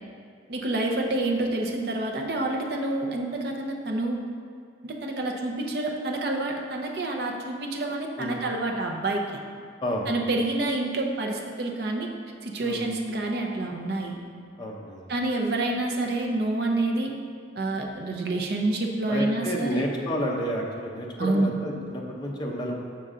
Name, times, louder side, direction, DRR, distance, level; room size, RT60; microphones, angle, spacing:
voice 1, 0.5-4.2 4.8-9.4 10.1-12.1 12.4-14.2 15.1-17.1 17.6-19.8 21.2-21.5, right 2 dB, 55° right, 1 dB, 0.7 m, -28 dB
voice 2, 9.8-10.3 12.6-12.9 14.6-15.1 19.1-22.7, equal, 20° left, -1 dB, 0.7 m, -30 dB
6.6 x 5.3 x 3.7 m, 2.2 s
head